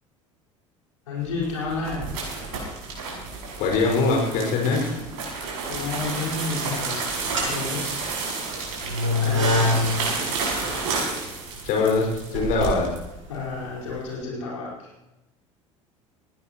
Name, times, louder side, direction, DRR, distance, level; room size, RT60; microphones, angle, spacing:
voice 1, 1.1-2.1 5.7-7.0 7.4-8.3 9.2-10.0 10.7-11.0 13.3-14.9, left 3 dB, 75° left, -5 dB, 4.9 m, -31 dB
sound 1, 1.3-13.0, right 4 dB, 60° right, 7.0 m, -31 dB
voice 2, 3.6-4.8 11.6-12.9, left 4 dB, 55° left, -1 dB, 5.7 m, -22 dB
sound 2, 5.9-6.4 7.1-14.0, left 2 dB, 80° right, 7.3 m, -27 dB
21.5 x 17.0 x 3.1 m, 0.94 s
figure-of-eight pair, 65°, 17 cm